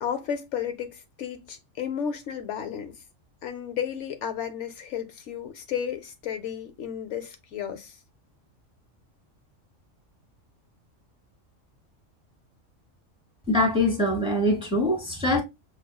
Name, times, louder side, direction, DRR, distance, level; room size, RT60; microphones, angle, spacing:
voice 1, 0.0-3.0 3.4-8.0, left 8 dB, 75° left, 0.9 m, -33 dB
voice 2, 13.5-15.4, left 1 dB, 5° right, 0.9 m, -23 dB
6.1 x 2.4 x 2.2 m
omnidirectional pair, 1.3 m